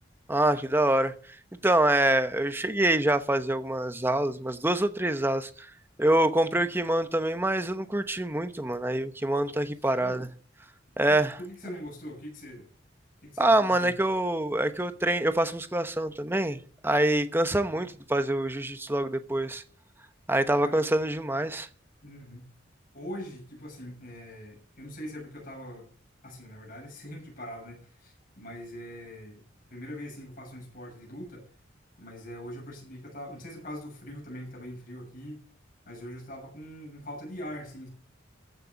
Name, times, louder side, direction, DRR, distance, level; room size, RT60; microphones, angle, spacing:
voice 1, 0.3-1.4 1.6-5.7 6.0-10.3 11.0-11.4 13.4-19.6 20.3-21.7, right 1 dB, 10° right, 0.9 m, -25 dB
voice 2, 11.1-12.7 13.2-14.0 17.7-17.9 20.6-20.8 22.0-22.5 22.9-25.9 26.2-29.4 29.7-31.5 32.0-35.4 35.9-37.9, equal, 50° left, 7.0 m, -42 dB
15.0 x 6.8 x 8.2 m
head